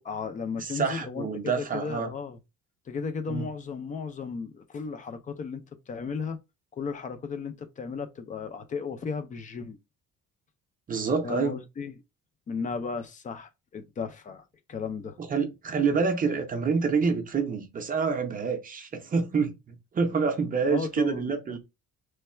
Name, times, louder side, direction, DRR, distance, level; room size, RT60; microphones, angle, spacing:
voice 1, 0.0-2.4 2.9-6.4 6.7-9.8 11.2-11.9 12.5-14.4 14.7-15.2 20.7-21.6, left 5 dB, 25° left, 0.4 m, -35 dB
voice 2, 0.6-2.1 3.3-3.5 10.9-11.5 15.2-21.6, right 5 dB, 30° right, 0.6 m, -27 dB
3.2 x 2.2 x 4.3 m
cardioid pair, 175°, 30 cm